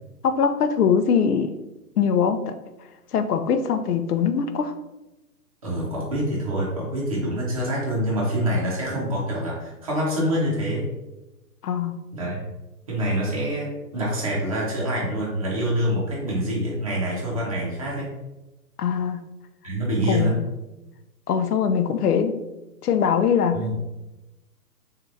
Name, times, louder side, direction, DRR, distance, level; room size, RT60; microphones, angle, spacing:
voice 1, 0.2-1.5 2.0-2.6 3.1-4.7 11.6-12.0 18.8-19.2 20.1-20.4 21.3-22.3 22.8-23.6, left 7 dB, 70° left, 9 dB, 0.6 m, -22 dB
voice 2, 5.6-10.9 12.1-12.5 12.9-18.1 19.6-20.4 23.5-23.7, equal, 25° right, -5 dB, 0.7 m, -26 dB
6.2 x 2.4 x 2.7 m, 1.0 s
hypercardioid pair, 170°, 48 cm